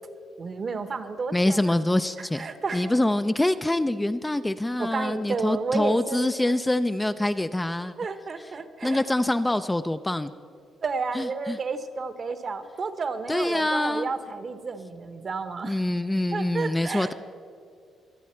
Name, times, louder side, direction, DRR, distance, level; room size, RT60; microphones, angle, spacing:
voice 1, 0.4-1.8 2.2-2.9 4.8-6.3 8.0-9.0 10.8-15.8 16.3-17.1, right 4 dB, 45° right, 10 dB, 1.0 m, -31 dB
voice 2, 1.3-2.5 2.7-7.9 8.8-10.3 11.2-11.6 13.3-14.1 15.6-17.1, left 1 dB, 10° left, 10 dB, 0.4 m, -25 dB
25.0 x 8.4 x 4.4 m, 2.2 s
cardioid pair, 90°, 0 cm